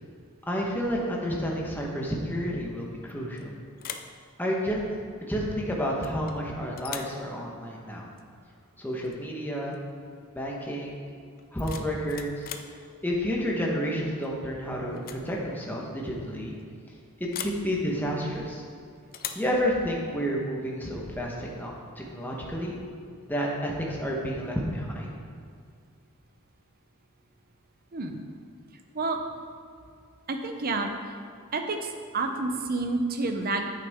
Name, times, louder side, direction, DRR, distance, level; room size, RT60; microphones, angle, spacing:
voice 1, 0.5-3.5 4.4-4.8 5.2-8.0 8.8-9.8 10.3-11.0 11.5-12.5 13.0-16.5 17.2-18.6 19.3-22.8 23.3-25.2, equal, 10° left, -2 dB, 1.2 m, -30 dB
sound 1, 3.1-3.4 3.8-4.2 6.0-6.4 6.8-7.2 9.0-9.2 9.6-9.9 11.4-12.8 14.2-14.5 14.9-15.3 15.5-15.6 17.3-17.7 19.1-19.5, left 9 dB, 40° left, 0.4 m, -39 dB
voice 2, 30.3-31.1 31.5-33.7, right 3 dB, 40° right, 5 dB, 0.8 m, -29 dB
8.9 x 8.2 x 3.6 m, 2.2 s
head